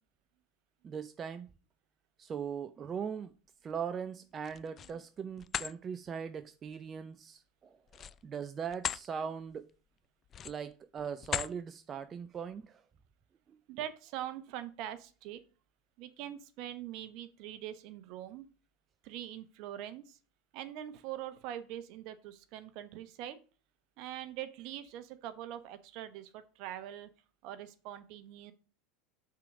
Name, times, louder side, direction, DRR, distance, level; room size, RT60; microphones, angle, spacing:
voice 1, 0.8-1.5 2.2-3.3 3.6-9.7 10.4-12.8, right 7 dB, 30° right, 0.5 m, -40 dB
sound 1, 4.3-5.0 5.4-5.7 7.9-9.1 9.5-9.7 10.3-10.7 11.2-11.6, left 9 dB, 35° left, 0.3 m, -37 dB
voice 2, 13.7-15.4 16.0-18.5 19.0-20.2 20.5-23.4 24.0-27.1 27.4-28.5, right 12 dB, 55° right, 0.9 m, -43 dB
5.7 x 3.9 x 5.9 m
hypercardioid pair, 85°, 0 cm